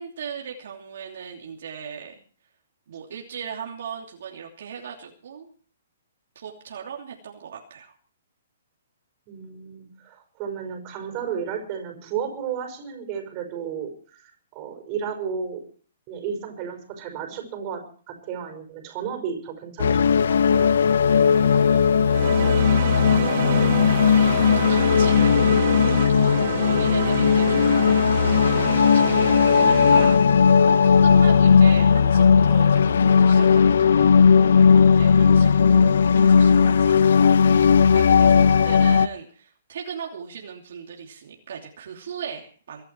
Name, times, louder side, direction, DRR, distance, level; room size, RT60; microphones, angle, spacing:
voice 1, 0.0-2.2 2.9-5.5 6.3-7.9 21.1-22.9 24.1-25.8 26.1-37.3 37.6-42.8, right 7 dB, 65° right, 0 dB, 2.9 m, -39 dB
voice 2, 9.3-15.6 16.1-20.7, right 7 dB, 30° right, 4 dB, 5.5 m, -33 dB
sound 1, 19.8-39.1, left 6 dB, 75° left, 0.8 m, -17 dB
sound 2, 22.1-30.2, right 11 dB, 45° right, 1.4 m, -29 dB
23.5 x 11.0 x 4.6 m, 0.43 s
hypercardioid pair, 160°, 0 cm